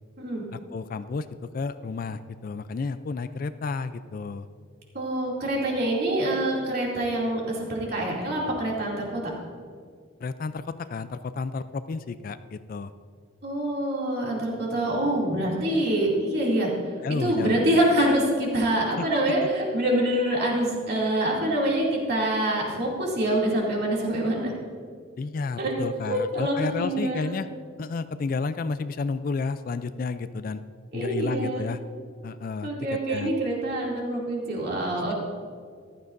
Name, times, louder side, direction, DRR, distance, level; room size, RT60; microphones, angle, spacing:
voice 1, 0.5-4.5 10.2-12.9 17.0-17.6 19.0-19.1 25.2-27.5 27.8-30.6 30.9-31.8 32.2-32.7 33.1-33.3, left 4 dB, 45° left, 12 dB, 0.3 m, -31 dB
voice 2, 4.9-9.3 13.4-16.7 17.2-24.5 25.6-25.7 26.1-27.4 30.9-31.6 32.6-35.1, right 1 dB, 55° right, -3 dB, 2.5 m, -25 dB
14.5 x 12.0 x 2.6 m, 2.1 s
head